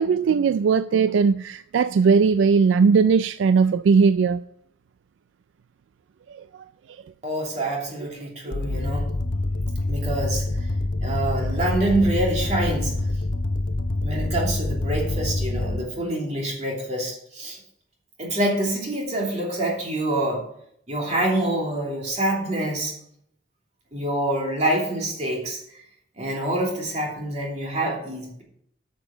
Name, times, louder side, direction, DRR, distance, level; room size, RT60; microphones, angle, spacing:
voice 1, 0.0-4.4 6.3-6.4 8.5-8.6, right 5 dB, 80° right, 0.3 m, -19 dB
voice 2, 7.2-9.1 9.9-10.4 11.0-12.9 14.0-17.6 18.2-20.4 20.9-22.9 23.9-25.6 26.2-28.4, right 1 dB, 35° right, 2.8 m, -26 dB
sound 1, 8.5-15.8, left 2 dB, 75° left, 0.7 m, -26 dB
9.0 x 6.8 x 6.0 m
head